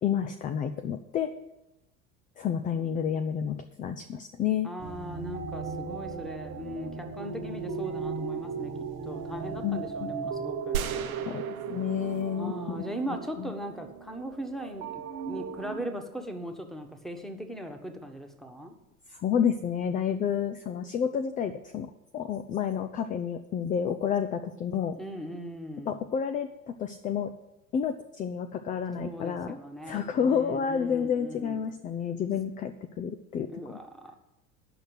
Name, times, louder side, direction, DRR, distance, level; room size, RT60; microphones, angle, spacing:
voice 1, 0.0-1.3 2.4-4.7 9.6-10.2 11.3-12.8 13.4-13.5 19.1-25.0 25.9-27.3 27.7-29.6 29.9-33.8, left 8 dB, 20° left, 9 dB, 0.4 m, -30 dB
voice 2, 4.6-8.7 9.0-10.8 12.4-18.7 25.0-26.0 29.0-31.6 33.5-34.1, equal, ahead, 5 dB, 1.4 m, -39 dB
sound 1, 4.8-15.8, right 5 dB, 45° right, 1.5 m, -37 dB
sound 2, 10.7-13.1, right 9 dB, 75° right, 0.9 m, -37 dB
9.9 x 6.5 x 8.4 m, 0.92 s
figure-of-eight pair, 75°, 43 cm